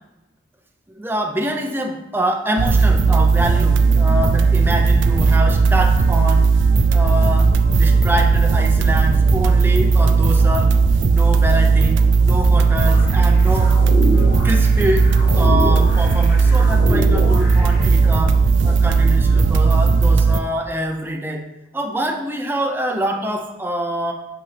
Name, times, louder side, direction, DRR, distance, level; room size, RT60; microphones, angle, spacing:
voice 1, 0.9-6.5 6.9-10.8 11.0-13.7 14.1-15.1 15.4-18.4 18.6-21.4 21.7-24.1, right 1 dB, 10° right, 1 dB, 0.7 m, -25 dB
sound 1, 2.6-20.4, right 4 dB, 85° right, 0.4 m, -15 dB
sound 2, 12.9-17.9, left 1 dB, 50° left, 1.4 m, -27 dB
8.5 x 5.3 x 3.4 m, 0.98 s
head